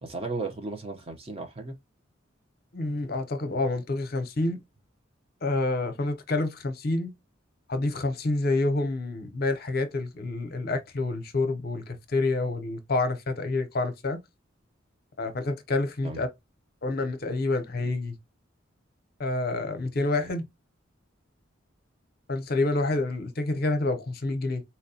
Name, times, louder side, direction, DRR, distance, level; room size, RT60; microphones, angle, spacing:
voice 1, 0.0-1.8 16.0-16.2 20.2-20.3, right 3 dB, 30° right, 0.7 m, -35 dB
voice 2, 2.7-4.6 5.4-7.1 7.7-14.2 15.2-16.3 16.8-18.2 19.2-20.5 22.3-24.6, left 2 dB, 50° left, 0.7 m, -28 dB
4.2 x 2.2 x 2.7 m
head